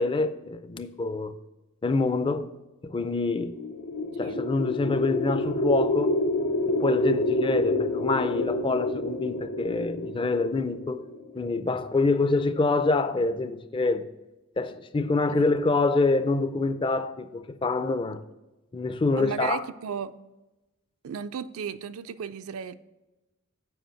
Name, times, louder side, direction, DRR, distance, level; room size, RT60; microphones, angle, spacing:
voice 1, 0.0-1.3 1.8-2.5 2.8-3.6 4.2-6.2 6.7-11.0 11.3-14.1 14.6-18.2 18.7-19.6, left 3 dB, 25° left, 0.4 m, -26 dB
sound 1, 3.4-11.6, left 1 dB, 75° left, 0.6 m, -28 dB
voice 2, 19.2-20.2 21.0-22.7, right 7 dB, 75° right, 0.4 m, -34 dB
7.8 x 5.0 x 5.6 m
head